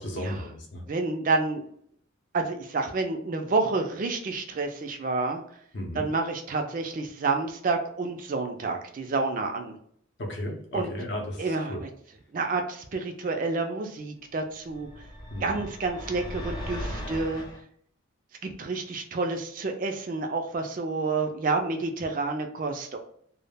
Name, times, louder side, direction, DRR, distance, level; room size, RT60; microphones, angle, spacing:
voice 1, 0.0-0.9 5.7-6.1 10.2-11.8 15.3-15.6, left 1 dB, 60° left, 1 dB, 0.6 m, -34 dB
voice 2, 0.9-1.6 2.3-5.4 6.0-9.8 10.7-10.9 11.4-11.9 12.3-14.9 15.4-17.4 18.4-23.0, right 3 dB, 40° right, 4 dB, 0.3 m, -29 dB
sound 1, 14.7-17.6, equal, 20° left, 0.6 m, -37 dB
2.2 x 2.0 x 3.3 m, 0.64 s
head